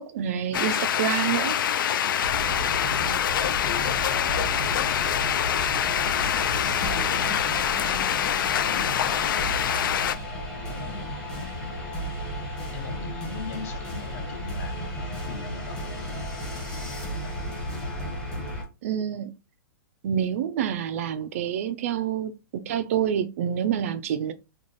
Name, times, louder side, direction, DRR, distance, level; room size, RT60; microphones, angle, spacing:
voice 1, 0.0-1.6 18.8-19.3 20.0-24.3, right 9 dB, 40° right, 0.4 m, -27 dB
sound 1, 0.5-10.2, left 9 dB, 75° left, 0.4 m, -25 dB
voice 2, 2.0-8.3 8.6-10.2 10.5-12.0 12.7-16.3 17.1-18.1, left 5 dB, 40° left, 0.8 m, -42 dB
sound 2, 2.2-18.6, equal, 5° left, 0.9 m, -34 dB
3.1 x 2.2 x 4.0 m
hypercardioid pair, 165°, 11 cm